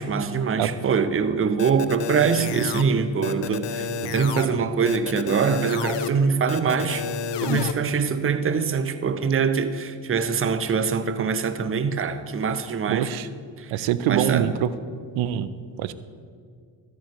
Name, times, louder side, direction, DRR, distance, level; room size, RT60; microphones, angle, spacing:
voice 1, 0.0-7.0 7.4-13.1 13.6-13.7 14.1-14.5, right 6 dB, 25° right, 0.7 m, -23 dB
sound 1, 1.6-2.8 3.2-4.5 4.9-6.1 6.5-7.7, left 7 dB, 55° left, 0.7 m, -30 dB
voice 2, 12.9-13.3 13.7-14.7 15.2-15.5 15.8-15.9, right 11 dB, 70° right, 0.6 m, -24 dB
13.0 x 9.3 x 3.1 m
supercardioid pair, 60°, 49 cm